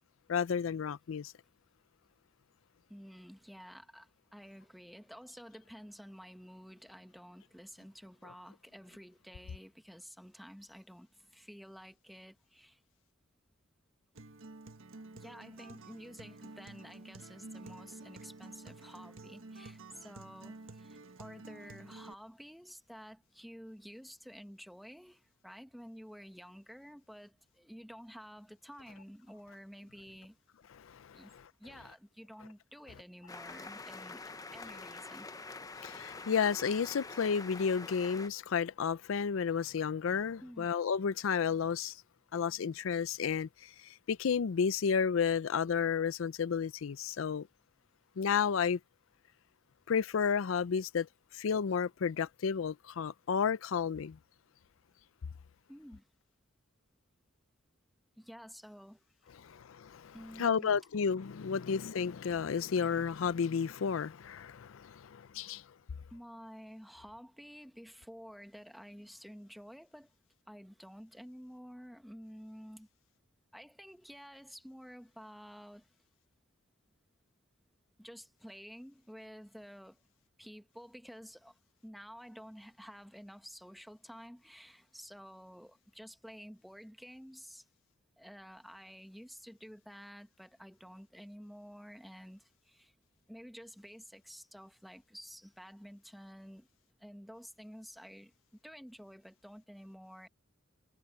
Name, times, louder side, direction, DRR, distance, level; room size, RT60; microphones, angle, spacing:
voice 1, 0.3-1.3 30.8-31.2 35.8-42.0 42.3-43.7 44.1-47.5 48.2-48.8 49.9-51.1 51.3-54.2 59.4-65.6, left 6 dB, 85° left, 0.5 m, -32 dB
voice 2, 2.9-12.8 15.1-30.4 31.1-31.3 31.6-35.3 40.4-40.7 55.7-56.1 58.2-59.0 60.1-60.8 66.1-70.1 70.5-72.9 73.5-75.9 78.0-80.0 80.4-87.7 88.2-92.9 93.3-96.7 97.0-98.3 98.6-100.3, equal, ahead, 1.3 m, -51 dB
Acoustic guitar, 14.1-22.1, right 2 dB, 85° right, 1.4 m, -50 dB
sound 1, 33.3-38.3, left 3 dB, 20° left, 0.8 m, -46 dB
head